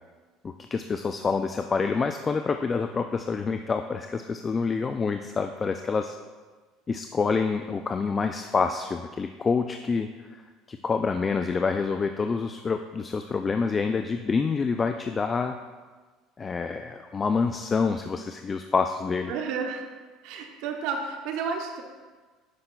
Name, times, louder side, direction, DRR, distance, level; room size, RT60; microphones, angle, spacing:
voice 1, 0.4-6.2 6.9-10.4 10.7-15.6 16.4-19.3, left 5 dB, 30° left, 7 dB, 0.3 m, -27 dB
voice 2, 19.3-19.8 20.2-21.8, right 5 dB, 70° right, 3 dB, 0.8 m, -31 dB
9.6 x 5.7 x 2.3 m, 1.4 s
supercardioid pair, 85°, 0 cm